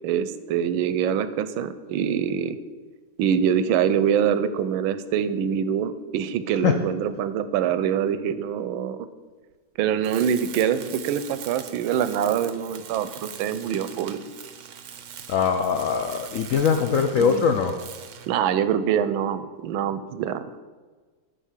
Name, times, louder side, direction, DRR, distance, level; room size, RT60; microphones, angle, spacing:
voice 1, 0.0-2.6 3.2-9.1 9.8-14.2 17.2-17.5 18.3-20.6, right 8 dB, 90° right, 13 dB, 1.4 m, -24 dB
Tools, 10.0-18.4, right 8 dB, 65° right, 0.7 m, -42 dB
voice 2, 15.3-17.7, left 6 dB, 80° left, 6 dB, 0.7 m, -22 dB
8.3 x 5.9 x 7.3 m, 1.4 s
omnidirectional pair, 2.1 m